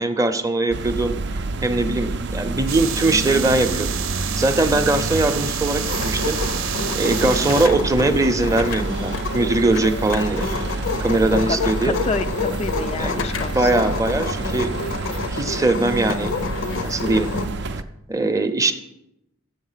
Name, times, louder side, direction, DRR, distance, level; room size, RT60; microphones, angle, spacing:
voice 1, 0.0-3.9 4.4-6.4 6.9-10.5 11.0-12.0 13.0-14.7 15.3-16.3 16.8-17.3 18.1-18.7, right 2 dB, 15° right, 8 dB, 0.6 m, -21 dB
sound 1, 0.7-17.8, right 3 dB, 60° right, 0.5 m, -28 dB
sound 2, 2.7-7.7, right 8 dB, 90° right, 0.8 m, -29 dB
sound 3, 5.8-17.5, left 4 dB, 65° left, 0.6 m, -29 dB
voice 2, 7.2-7.6 11.5-13.9, left 4 dB, 30° left, 8 dB, 0.3 m, -29 dB
7.3 x 7.3 x 5.6 m, 0.84 s
head